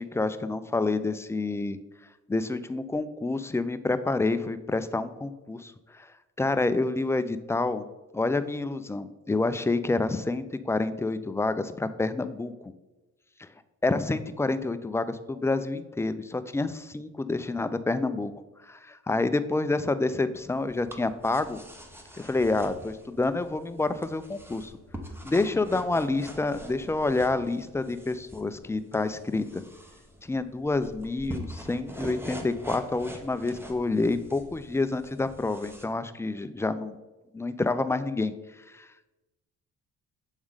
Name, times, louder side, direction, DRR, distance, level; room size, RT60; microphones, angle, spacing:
voice 1, 0.0-1.8 2.3-6.1 6.4-7.9 8.1-12.7 13.4-13.5 13.8-18.3 18.6-21.6 22.2-24.7 25.2-29.6 30.2-37.0 37.3-38.3 38.7-38.9, left 3 dB, 10° left, 12 dB, 0.3 m, -28 dB
sound 1, 20.3-35.8, equal, 10° right, 0.9 m, -44 dB
7.3 x 3.6 x 4.8 m, 1.1 s
cardioid pair, 90°, 30 cm